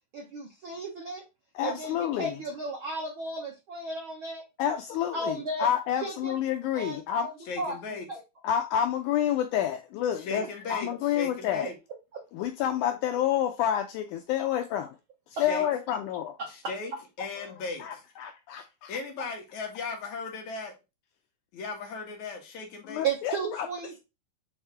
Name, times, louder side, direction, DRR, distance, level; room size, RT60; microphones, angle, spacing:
voice 1, 0.1-1.2 1.6-4.4 5.1-5.7 6.0-6.3 6.7-7.3 7.6-7.8 8.1-8.2 12.1-12.2 16.4-16.5 23.0-24.0, right 3 dB, 80° right, 1.1 m, -34 dB
voice 2, 1.5-2.4 4.6-7.3 8.4-11.7 12.3-14.9 15.4-16.4 17.4-17.5 17.8-18.9 22.9-23.7, left 10 dB, 80° left, 1.9 m, -29 dB
voice 3, 7.5-8.1 10.2-11.7 15.3-15.7 16.5-18.0 18.9-20.7 21.5-23.1, left 3 dB, 65° left, 2.4 m, -37 dB
7.9 x 3.6 x 3.4 m
omnidirectional pair, 4.0 m